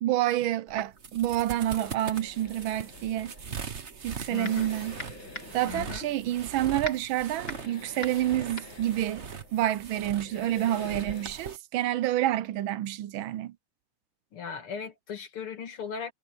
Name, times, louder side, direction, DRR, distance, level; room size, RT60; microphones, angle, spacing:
voice 1, 0.0-3.3 4.0-4.9 5.5-9.2 9.5-13.5, right 13 dB, 75° right, 1.4 m, -28 dB
sound 1, 0.7-11.6, right 6 dB, 35° right, 1.3 m, -41 dB
sound 2, 1.4-11.3, left 3 dB, 60° left, 4.8 m, -50 dB
sound 3, 3.9-4.7 5.0-10.0, left 2 dB, 25° left, 3.5 m, -41 dB
voice 2, 4.3-4.7 5.6-6.1 14.3-16.1, left 7 dB, 85° left, 3.1 m, -37 dB
omnidirectional pair, 2.3 m